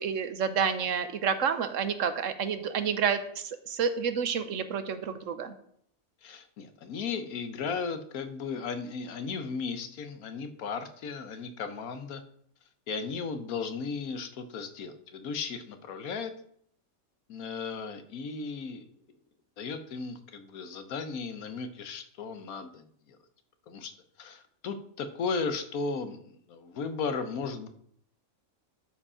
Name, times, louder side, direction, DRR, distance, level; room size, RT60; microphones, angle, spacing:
voice 1, 0.0-5.5, right 7 dB, 65° right, 10 dB, 1.1 m, -29 dB
voice 2, 6.2-12.2 12.9-16.3 17.3-18.8 19.6-23.2 23.7-23.9 24.2-27.7, left 5 dB, 75° left, 9 dB, 1.4 m, -35 dB
12.5 x 5.0 x 4.9 m, 0.67 s
omnidirectional pair, 1.5 m